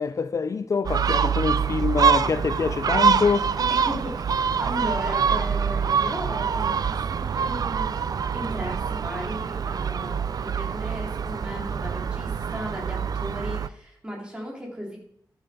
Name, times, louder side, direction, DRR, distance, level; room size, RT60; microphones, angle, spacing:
voice 1, 0.0-3.5, left 5 dB, 45° left, 0.4 m, -25 dB
Gull seagull, 0.8-13.7, right 6 dB, 60° right, 0.4 m, -25 dB
voice 2, 3.7-4.2 4.6-7.9 8.3-15.0, equal, 15° right, 3.5 m, -36 dB
12.0 x 7.7 x 5.3 m
wide cardioid pair, 135°, 7 cm